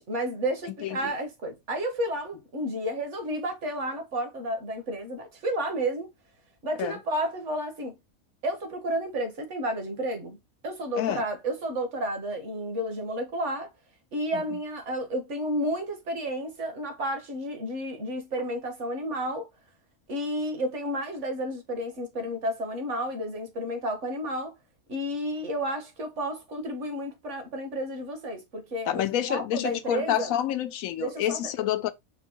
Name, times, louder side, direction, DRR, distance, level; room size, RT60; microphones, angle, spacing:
voice 1, 0.0-6.1 6.6-8.0 8.4-10.4 10.6-13.7 14.1-19.5 20.1-24.5 24.9-29.0 29.3-30.3 31.0-31.4, equal, 55° right, 1.5 m, -31 dB
voice 2, 0.8-1.1 6.8-7.0 11.0-11.2 14.3-14.6 28.9-31.9, left 11 dB, 80° left, 1.0 m, -28 dB
5.1 x 2.1 x 4.3 m
omnidirectional pair, 1.5 m